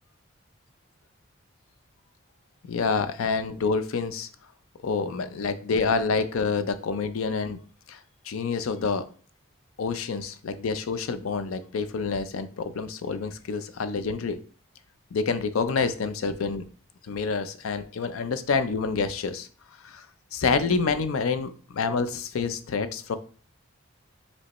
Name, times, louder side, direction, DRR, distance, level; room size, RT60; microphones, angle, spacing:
voice 1, 2.7-4.3 4.8-7.6 7.9-8.0 8.3-9.1 9.8-14.4 15.1-16.6 17.0-19.5 19.8-20.1 20.3-23.2, left 4 dB, 85° left, 0.4 m, -27 dB
5.1 x 3.2 x 3.0 m
head